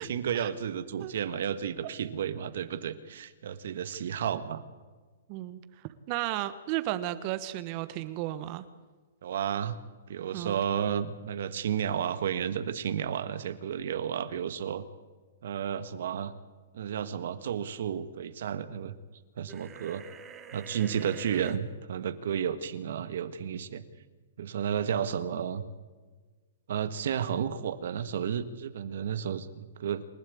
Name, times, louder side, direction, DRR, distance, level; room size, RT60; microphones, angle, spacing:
voice 1, 0.0-4.6 9.2-9.8 10.1-14.8 15.4-16.3 16.7-18.9 19.4-20.0 20.5-23.8 24.4-25.6 26.7-30.1, right 8 dB, 70° right, 12 dB, 1.6 m, -32 dB
voice 2, 5.3-8.6 10.3-10.6, right 15 dB, 40° right, 13 dB, 1.2 m, -34 dB
sound 1, 19.5-21.6, right 6 dB, 20° right, 2.5 m, -46 dB
28.0 x 12.0 x 8.6 m, 1.4 s
hypercardioid pair, 135°, 0 cm